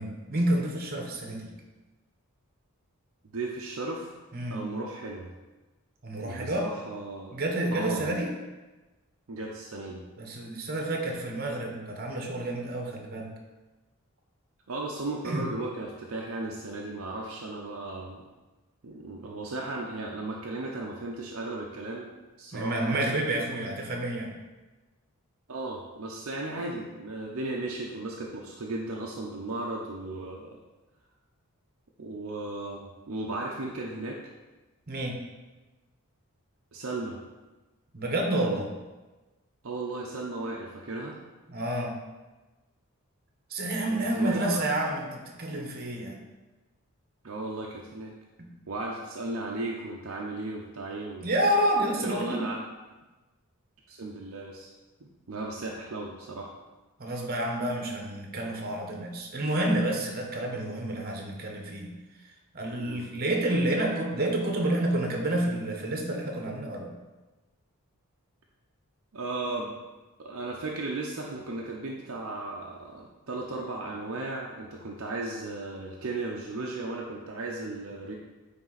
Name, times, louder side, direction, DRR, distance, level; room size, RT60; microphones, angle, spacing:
voice 1, 0.0-1.5 4.3-4.7 6.0-6.7 7.3-8.3 10.2-13.3 15.2-15.5 22.5-24.3 34.9-35.2 37.9-38.7 41.5-42.0 43.5-46.2 48.4-48.5 51.2-52.4 57.0-61.9 62.5-66.9, right 1 dB, 45° right, 1 dB, 1.1 m, -29 dB
voice 2, 3.3-4.2 4.5-5.3 6.2-7.4 7.7-8.0 9.3-10.0 14.7-18.2 18.8-22.1 22.4-23.1 25.5-30.6 32.0-34.2 36.7-37.2 39.6-41.2 43.9-44.6 47.2-48.1 48.7-51.3 52.0-52.6 53.9-54.7 55.0-56.5 62.8-63.1 69.1-69.8 70.2-78.1, right 2 dB, 65° right, -2 dB, 0.7 m, -35 dB
9.0 x 3.5 x 4.0 m, 1.2 s
head